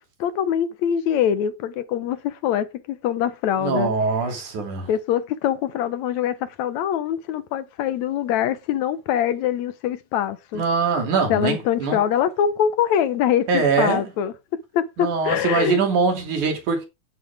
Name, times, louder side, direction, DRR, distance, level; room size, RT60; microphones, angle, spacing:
voice 1, 0.2-3.9 4.9-10.6 11.3-14.3 14.7-15.8, left 9 dB, 75° left, 2.3 m, -23 dB
voice 2, 3.6-4.9 10.5-12.0 13.5-14.1 15.0-16.9, right 4 dB, 85° right, 4.3 m, -22 dB
11.5 x 9.8 x 3.5 m
omnidirectional pair, 3.4 m